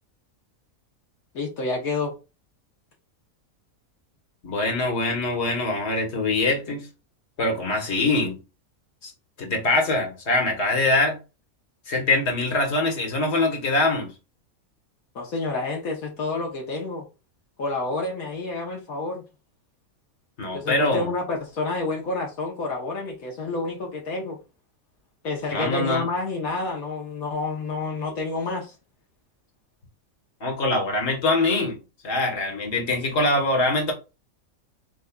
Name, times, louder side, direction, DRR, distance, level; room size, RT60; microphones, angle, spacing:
voice 1, 1.3-2.1 15.1-17.0 17.6-19.2 20.5-24.4 25.2-28.7, left 3 dB, 75° left, 1.5 m, -29 dB
voice 2, 4.4-6.9 7.4-8.4 9.0-9.1 9.4-11.2 11.9-14.1 20.4-21.1 25.5-26.1 30.4-31.8 32.0-33.9, left 2 dB, 50° left, 1.7 m, -23 dB
7.9 x 2.7 x 2.4 m
omnidirectional pair, 1.5 m